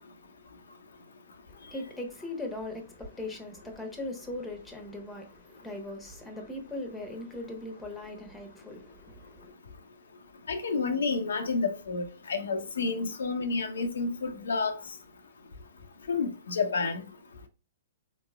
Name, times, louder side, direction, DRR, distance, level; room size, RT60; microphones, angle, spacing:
voice 1, 1.5-9.5, left 2 dB, 5° left, 1.0 m, -39 dB
voice 2, 10.5-14.8 16.1-17.0, left 4 dB, 75° left, 0.6 m, -30 dB
4.4 x 3.0 x 2.3 m
hypercardioid pair, 120°, 0 cm